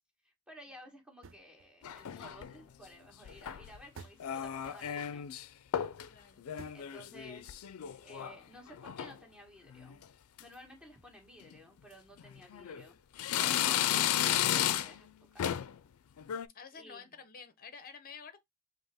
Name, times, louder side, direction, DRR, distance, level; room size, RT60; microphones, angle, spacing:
voice 1, 0.2-5.3 6.7-10.0 10.4-15.1 15.3-15.5 16.7-17.1, equal, 5° right, 1.4 m, -54 dB
sound 1, 1.2-2.1 2.4-3.4 4.0-5.6 6.6-6.8 7.4-7.9, right 5 dB, 60° right, 0.4 m, -55 dB
sound 2, 1.8-2.6 3.3-3.8 4.2-5.5 5.7-6.1 6.4-8.4 8.7-9.2 9.7-10.0 10.4-10.5 11.4-11.6 12.2-12.8 13.2-15.1 15.4-15.8 16.2-16.5, left 11 dB, 85° left, 0.4 m, -33 dB
voice 2, 6.1-6.5 16.5-18.4, left 6 dB, 45° left, 0.7 m, -50 dB
5.2 x 2.0 x 3.4 m
head